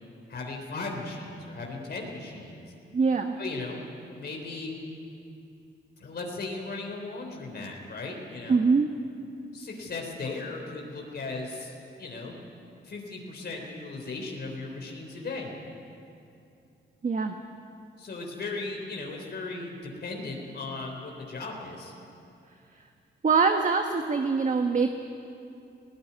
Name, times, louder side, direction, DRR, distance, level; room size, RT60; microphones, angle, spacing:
voice 1, 0.3-2.6 3.4-3.8 4.2-4.8 6.0-8.7 9.5-11.7 12.0-12.4 12.8-15.5 18.0-21.9, left 3 dB, 55° left, 0 dB, 3.6 m, -37 dB
voice 2, 2.9-3.4 8.5-8.9 17.0-17.4 22.7-22.8 23.2-24.9, right 4 dB, 40° right, 5 dB, 1.2 m, -23 dB
19.5 x 17.0 x 9.7 m, 2.7 s
cardioid pair, 85°, 20 cm